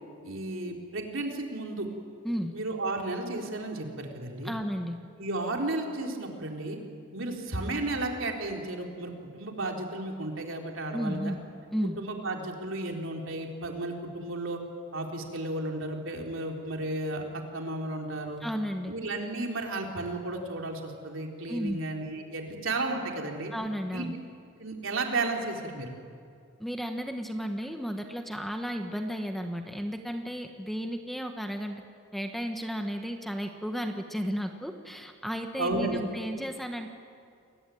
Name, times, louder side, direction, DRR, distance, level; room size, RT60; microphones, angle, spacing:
voice 1, 0.2-1.9 2.5-4.5 5.2-6.8 7.1-11.3 12.0-14.6 14.9-17.2 17.5-18.4 18.9-23.5 23.9-24.1 24.6-25.9 35.6-36.0, right 2 dB, 65° right, 2 dB, 3.9 m, -33 dB
voice 2, 4.4-5.0 10.9-11.4 11.7-12.0 18.4-18.9 21.5-21.8 23.5-24.2 26.6-31.7 32.1-36.9, equal, ahead, 5 dB, 1.4 m, -33 dB
29.5 x 22.0 x 9.3 m, 2.4 s
head